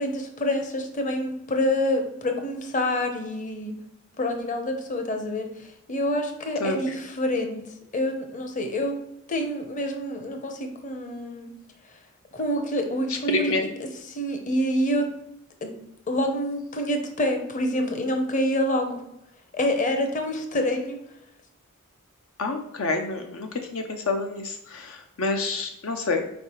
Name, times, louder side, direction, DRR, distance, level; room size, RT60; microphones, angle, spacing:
voice 1, 0.0-3.7 4.2-7.6 7.9-9.0 9.3-11.5 12.3-13.7 14.1-15.1 15.6-15.7 16.1-19.0 19.5-21.0, left 1 dB, 35° left, 5 dB, 0.8 m, -27 dB
voice 2, 6.6-6.9 13.1-13.6 22.4-26.2, left 3 dB, 65° left, 5 dB, 0.5 m, -28 dB
5.2 x 4.5 x 4.4 m, 0.83 s
head